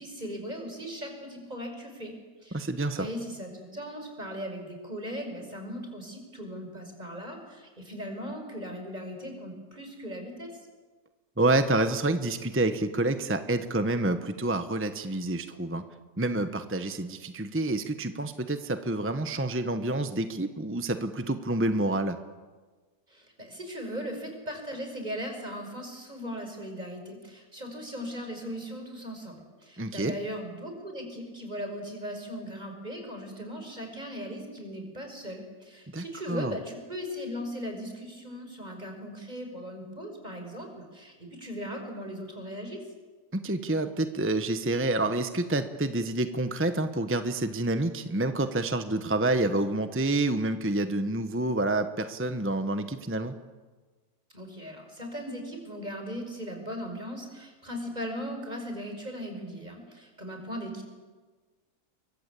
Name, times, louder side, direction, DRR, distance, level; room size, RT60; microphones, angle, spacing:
voice 1, 0.0-2.2 2.4-2.6 2.9-10.5 23.1-42.8 54.3-60.8, equal, 25° right, 4 dB, 5.8 m, -38 dB
voice 2, 2.5-3.1 11.4-15.8 16.2-22.2 29.8-30.1 35.9-36.5 43.3-53.3, right 2 dB, 10° right, 9 dB, 1.0 m, -28 dB
30.0 x 23.0 x 8.4 m, 1.3 s
omnidirectional pair, 1.7 m